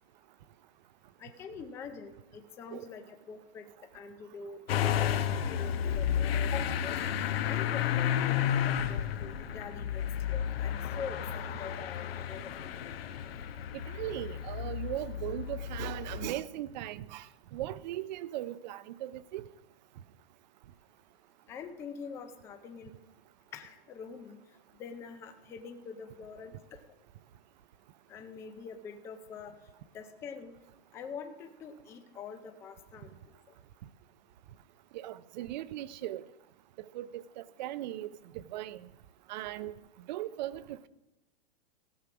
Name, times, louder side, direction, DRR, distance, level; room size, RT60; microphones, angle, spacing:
voice 1, 1.2-3.7 3.9-7.0 7.4-13.0 21.5-22.9 23.5-24.4 24.8-26.8 28.1-29.5 29.9-30.5 30.9-33.4, left 6 dB, 10° left, 0.4 m, -44 dB
Motor vehicle (road) / Engine starting, 4.7-16.3, left 9 dB, 70° left, 0.9 m, -32 dB
voice 2, 13.9-17.3 17.5-19.4 34.9-36.2 36.9-38.8 39.3-39.7 40.1-40.9, right 14 dB, 45° right, 0.5 m, -38 dB
15.5 x 6.4 x 5.9 m
hypercardioid pair, 145°, 31 cm